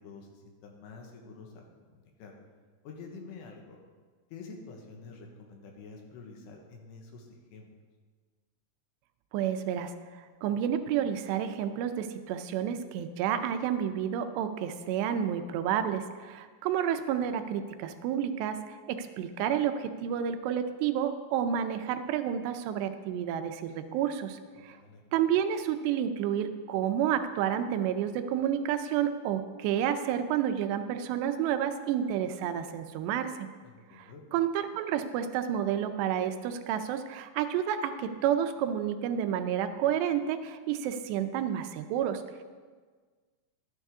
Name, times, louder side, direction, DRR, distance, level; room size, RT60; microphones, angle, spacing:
voice 1, 0.0-2.3 2.8-3.8 4.3-7.7 24.5-25.0 33.6-34.2, left 4 dB, 85° left, 1 dB, 3.4 m, -48 dB
voice 2, 9.3-9.9 10.4-18.6 18.9-24.8 25.1-33.5 33.9-42.4, right 9 dB, 85° right, 8 dB, 2.8 m, -30 dB
12.5 x 9.6 x 3.6 m, 1.5 s
omnidirectional pair, 4.8 m